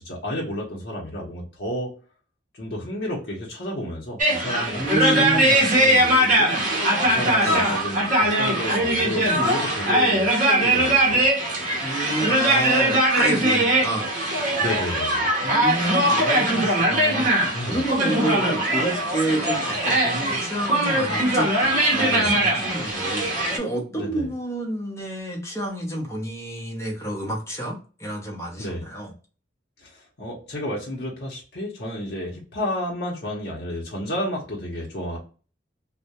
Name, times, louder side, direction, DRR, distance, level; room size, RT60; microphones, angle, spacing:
voice 1, 0.0-1.9 2.6-6.5 7.0-11.2 14.6-15.3 17.5-17.9 22.1-22.4 24.0-24.3 28.6-28.8 29.8-35.2, left 1 dB, 55° left, -3 dB, 0.7 m, -31 dB
sound 1, 4.2-23.6, right 1 dB, 40° right, 0.7 m, -21 dB
voice 2, 4.7-5.6 7.4-7.6 11.8-14.1 15.4-29.1, right 1 dB, 15° left, 0 dB, 0.7 m, -29 dB
2.3 x 2.0 x 2.7 m, 0.37 s
head